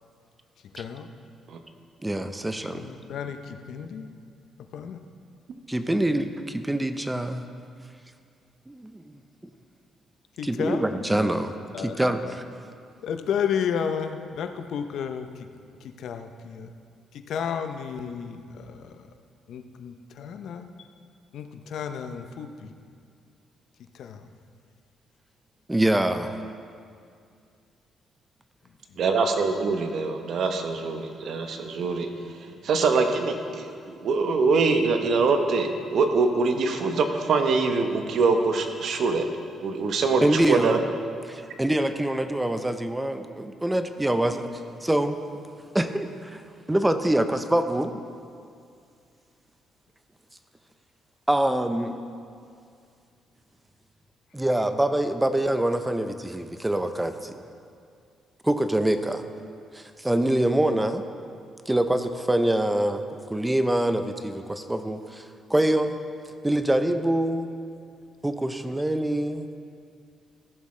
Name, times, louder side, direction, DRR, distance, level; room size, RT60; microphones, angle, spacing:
voice 1, 0.7-1.1 2.6-4.1 4.7-5.0 10.4-11.0 11.7-12.4 13.0-15.5 15.8-16.7 17.1-19.1 19.5-20.7 21.3-22.8 23.9-24.3 28.9-29.0, left 7 dB, 70° left, 7 dB, 0.6 m, -32 dB
voice 2, 2.0-2.9 5.7-7.4 8.7-9.1 10.4-12.4 25.7-26.3 40.2-40.8 41.3-44.5 44.8-45.2 45.7-46.4 46.7-48.0 51.3-52.0 54.3-57.4 58.4-59.3 59.7-61.0 61.7-63.0 63.3-66.0 66.4-67.5 68.2-69.5, right 1 dB, 10° right, 9 dB, 0.5 m, -25 dB
voice 3, 29.0-32.1 32.6-39.3 39.6-40.8, right 4 dB, 65° right, 6 dB, 0.9 m, -24 dB
15.0 x 7.1 x 3.2 m, 2.4 s
cardioid pair, 90°, 0 cm